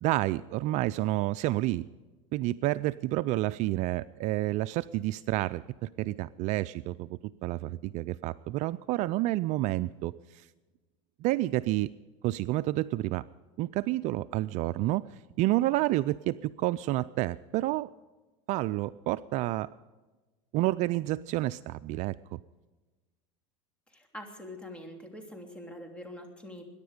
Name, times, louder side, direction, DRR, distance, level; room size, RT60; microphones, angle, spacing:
voice 1, 0.0-1.9 2.3-7.1 7.4-10.5 11.2-11.9 12.2-13.2 13.6-15.0 15.4-17.9 18.5-19.7 20.5-22.4, right 16 dB, 50° right, 15 dB, 0.4 m, -29 dB
voice 2, 23.9-26.6, left 1 dB, 5° left, 2 dB, 3.0 m, -44 dB
22.5 x 10.5 x 5.0 m, 1.2 s
supercardioid pair, 115°, 16 cm